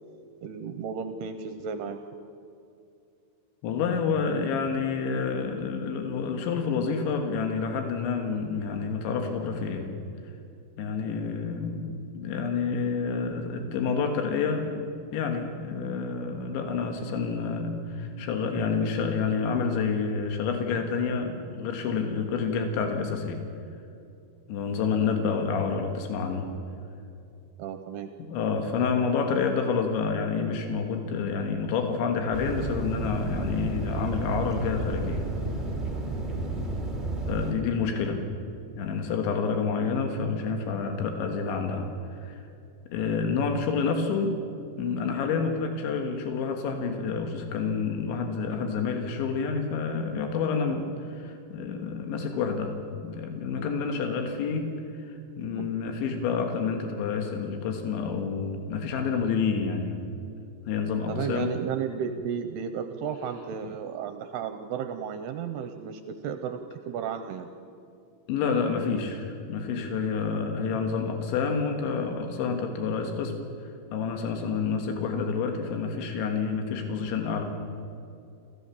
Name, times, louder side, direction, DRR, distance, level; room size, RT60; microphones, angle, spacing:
voice 1, 0.4-2.0 27.6-28.1 55.6-55.7 61.1-66.6 66.9-67.5 71.0-71.1, right 7 dB, 80° right, 8 dB, 2.6 m, -33 dB
voice 2, 3.6-9.9 10.8-23.4 24.5-26.5 28.3-35.3 37.3-38.2 38.8-42.4 42.9-44.4 44.8-54.7 55.0-60.1 60.7-61.6 68.3-77.5, left 5 dB, 90° left, 4 dB, 4.0 m, -28 dB
sound 1, 32.3-37.5, right 2 dB, 15° right, 1.7 m, -31 dB
29.0 x 15.0 x 7.1 m, 2.6 s
omnidirectional pair, 5.1 m